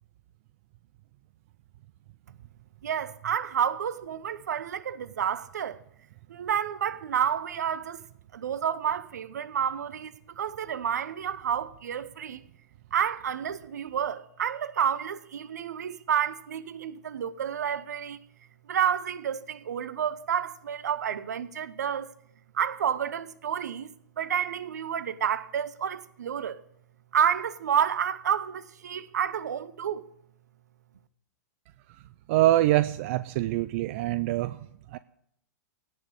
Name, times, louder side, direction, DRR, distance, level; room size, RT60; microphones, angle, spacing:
voice 1, 2.8-5.8 6.3-8.0 8.3-12.4 12.9-18.2 18.7-22.1 22.5-26.6 27.1-30.1, right 8 dB, 70° right, 1.0 m, -30 dB
voice 2, 32.3-34.6 34.9-35.0, right 15 dB, 45° right, 0.5 m, -24 dB
17.5 x 6.4 x 8.0 m
hypercardioid pair, 110°, 9 cm